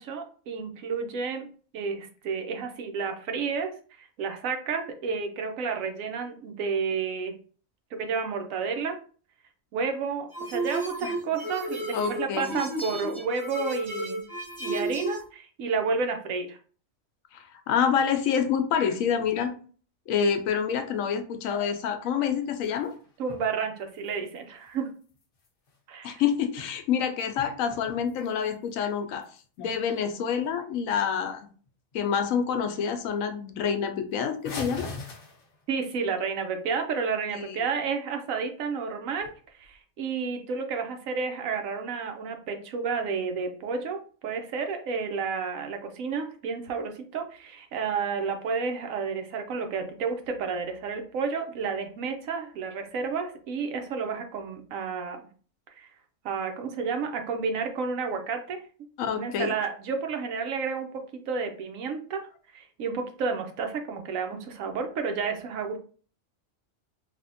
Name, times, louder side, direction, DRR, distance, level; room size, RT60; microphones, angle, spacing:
voice 1, 0.0-1.5 1.7-3.7 4.0-7.3 7.9-9.0 9.7-14.2 14.6-16.6 23.2-24.9 25.9-26.2 35.7-39.3 39.6-55.2 55.8-55.9 56.2-58.6 59.0-60.9 61.1-62.2 62.5-65.8, right 5 dB, 80° right, 5 dB, 1.0 m, -31 dB
sound 1, 10.3-15.2, right 1 dB, 25° right, 0.9 m, -33 dB
voice 2, 11.9-12.5 17.3-19.5 20.1-22.9 26.0-29.3 29.6-31.5 31.9-34.9 37.3-37.6 59.0-59.5, left 7 dB, 80° left, 6 dB, 1.0 m, -27 dB
sound 2, 22.2-23.5 23.8-25.8 26.3-27.0 27.3-28.7 29.2-29.3 29.8-29.9 30.4-30.5 30.8-31.3 31.7-32.1 32.5-32.6 32.9-33.0 33.3-33.4 34.4-35.8 39.1-39.7, left 3 dB, 55° left, 0.7 m, -43 dB
3.3 x 2.8 x 2.6 m, 0.41 s
omnidirectional pair, 1.4 m